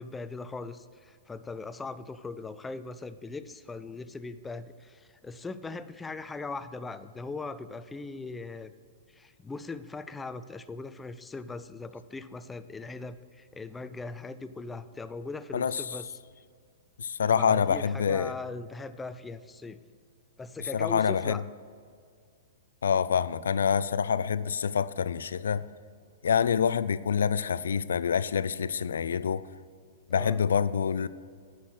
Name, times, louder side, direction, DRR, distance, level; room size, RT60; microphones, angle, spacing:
voice 1, 0.0-8.7 9.1-16.1 17.4-19.8 20.4-21.4 30.1-30.4, left 3 dB, 10° left, 0.4 m, -39 dB
voice 2, 17.0-18.3 20.7-21.4 22.8-25.7 26.2-29.5 30.1-31.1, left 7 dB, 85° left, 0.4 m, -26 dB
11.0 x 5.9 x 6.3 m
hypercardioid pair, 130°, 0 cm